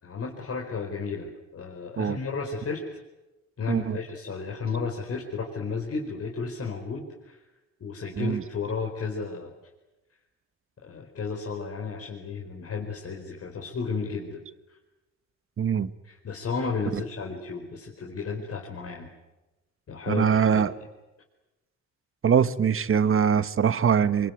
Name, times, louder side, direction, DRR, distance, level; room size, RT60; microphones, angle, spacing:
voice 1, 0.0-2.8 3.6-7.4 7.8-9.5 10.8-14.4 14.7-14.8 16.0-19.1 19.9-20.7, left 5 dB, 50° left, 0 dB, 4.7 m, -33 dB
voice 2, 3.7-4.0 8.2-8.4 15.6-15.9 16.9-17.0 20.1-20.7 22.2-24.3, right 7 dB, 45° right, 12 dB, 1.5 m, -23 dB
26.5 x 23.5 x 9.6 m, 1.0 s
cardioid pair, 90°, 30 cm